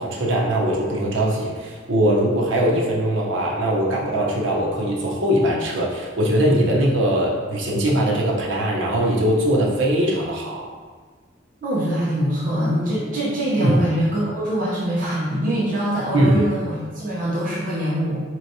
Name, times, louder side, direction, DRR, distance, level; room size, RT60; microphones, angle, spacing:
voice 1, 0.0-10.7 13.6-13.8 16.1-16.3, right 1 dB, 80° right, -3 dB, 0.7 m, -21 dB
voice 2, 11.6-18.2, right 1 dB, 45° right, -8 dB, 0.7 m, -23 dB
4.2 x 3.1 x 2.7 m, 1.5 s
head